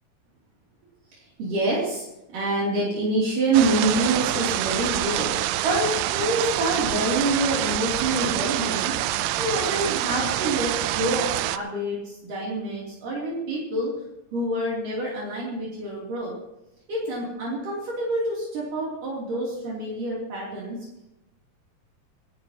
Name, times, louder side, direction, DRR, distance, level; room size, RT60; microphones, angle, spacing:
voice 1, 1.1-9.0 9.4-13.9 14.3-16.4 16.9-20.9, right 2 dB, 65° right, -5 dB, 4.5 m, -27 dB
sound 1, 3.5-11.6, right 14 dB, 80° right, 2.2 m, -26 dB
26.0 x 13.0 x 2.9 m, 0.94 s
omnidirectional pair, 4.2 m